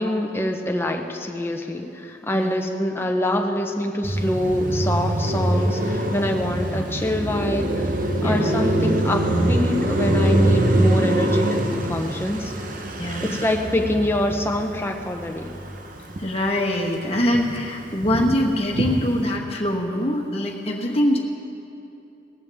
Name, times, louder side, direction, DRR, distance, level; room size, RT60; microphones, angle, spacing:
voice 1, 0.0-7.9 8.2-12.5 13.2-15.5, left 1 dB, 10° left, 2 dB, 0.8 m, -25 dB
Car passing by, 4.0-16.5 16.8-19.3, right 1 dB, 45° right, 0.9 m, -24 dB
voice 2, 8.2-8.6 13.0-13.4 16.2-21.2, left 1 dB, 35° left, 1 dB, 1.3 m, -23 dB
18.5 x 14.5 x 3.6 m, 2.9 s
head